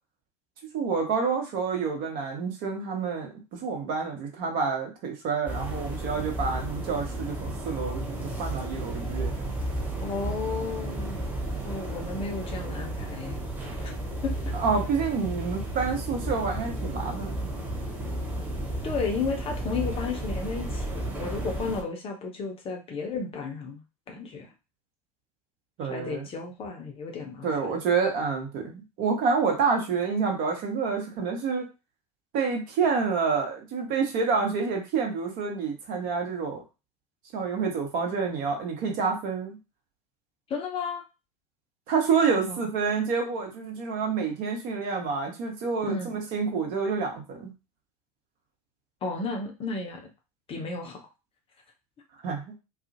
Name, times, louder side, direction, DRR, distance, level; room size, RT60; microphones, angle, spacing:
voice 1, 0.7-9.3 14.5-17.5 25.8-26.3 27.4-31.6 32.3-36.6 37.3-39.6 41.9-47.5 52.2-52.6, right 5 dB, 45° right, 2 dB, 0.9 m, -28 dB
sound 1, 5.5-21.8, right 1 dB, 10° right, 0.7 m, -33 dB
voice 2, 10.0-11.3 11.6-13.4 13.8-13.9 14.2-14.3 18.8-23.8 24.1-24.5 25.8-27.5 40.5-41.0 42.5-42.6 45.8-46.1 49.0-50.0 50.5-51.0, left 4 dB, 30° left, 3 dB, 0.6 m, -33 dB
2.4 x 2.0 x 2.6 m, 0.28 s
figure-of-eight pair, 75°, 20 cm